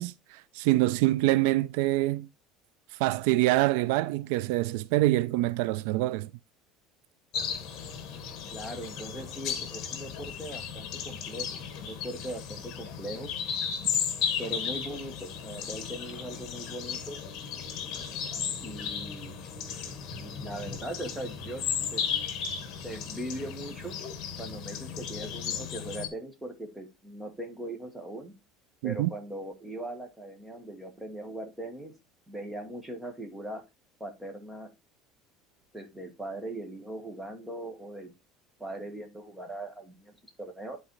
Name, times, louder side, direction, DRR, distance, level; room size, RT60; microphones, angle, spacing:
voice 1, 0.0-2.3 2.9-6.3 28.8-29.1, right 17 dB, 75° right, 0.3 m, -25 dB
sound 1, 7.3-26.1, left 7 dB, 45° left, 1.6 m, -35 dB
voice 2, 8.5-13.3 14.4-17.2 18.6-19.4 20.2-21.6 21.9-22.1 22.8-24.0 24.4-28.3 28.8-31.9 32.3-33.6 34.0-34.7 35.7-38.1 38.6-40.8, right 1 dB, 5° right, 1.4 m, -40 dB
11.0 x 4.0 x 3.1 m
cardioid pair, 155°, 0 cm